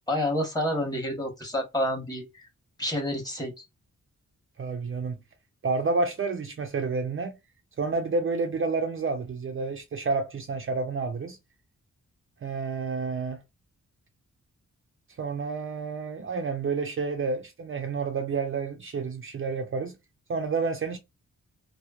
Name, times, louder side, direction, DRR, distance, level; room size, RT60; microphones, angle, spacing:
voice 1, 0.1-2.5 2.8-3.6, left 1 dB, 10° left, 1.0 m, -29 dB
voice 2, 4.6-5.2 5.6-7.3 7.8-11.4 12.4-13.4 15.2-20.0 20.3-21.0, right 4 dB, 40° right, 0.4 m, -29 dB
2.9 x 2.0 x 2.3 m
wide cardioid pair, 95°, 32 cm